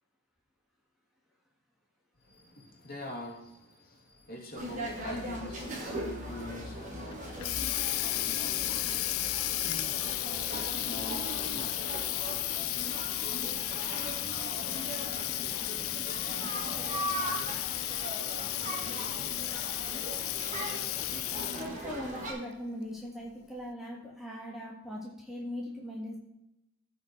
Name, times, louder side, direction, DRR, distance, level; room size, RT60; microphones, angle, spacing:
voice 1, 2.2-11.9, left 1 dB, 45° left, 2.5 m, -45 dB
sound 1, 4.5-22.3, equal, 35° right, 2.4 m, -39 dB
Water tap faucet, 7.1-21.8, left 15 dB, 85° left, 0.5 m, -34 dB
voice 2, 21.5-26.2, equal, ahead, 1.7 m, -40 dB
15.0 x 5.3 x 4.4 m
head